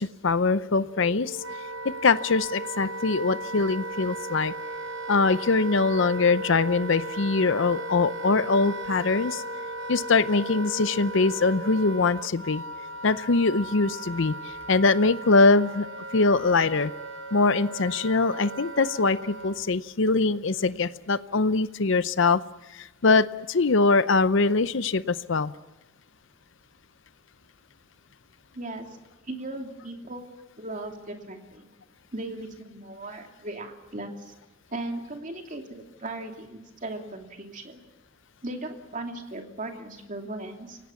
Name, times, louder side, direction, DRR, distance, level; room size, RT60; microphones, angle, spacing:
voice 1, 0.0-1.4 1.8-4.5 5.1-9.4 9.9-12.6 13.0-15.9 16.1-16.9 17.3-22.4 22.7-25.5, left 3 dB, 65° left, 14 dB, 0.7 m, -23 dB
Wind instrument woodwind instrument, 0.9-19.7, right 2 dB, 60° right, 1.1 m, -37 dB
voice 2, 28.5-29.0 29.2-30.3 30.6-31.7 32.1-34.3 34.7-37.8 38.4-40.8, right 2 dB, 40° right, 3 dB, 2.9 m, -37 dB
29.5 x 18.0 x 7.2 m, 1.0 s
head